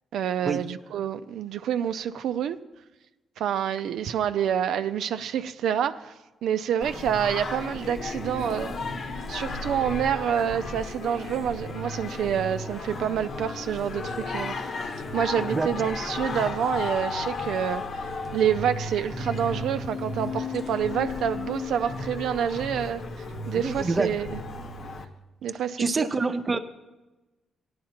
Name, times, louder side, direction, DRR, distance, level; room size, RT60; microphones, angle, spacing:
voice 1, 0.1-2.6 3.4-6.1 6.4-8.7 9.3-14.8 15.1-24.4 25.4-26.1, right 9 dB, 80° right, 0.4 m, -28 dB
Singing, 6.8-25.0, left 3 dB, 55° left, 1.0 m, -34 dB
sound 1, 7.9-22.5, left 6 dB, 30° left, 0.8 m, -42 dB
voice 2, 15.3-15.7 23.5-24.1 25.8-26.6, right 3 dB, 25° right, 0.6 m, -26 dB
18.0 x 11.0 x 2.9 m
cardioid pair, 150°, 0 cm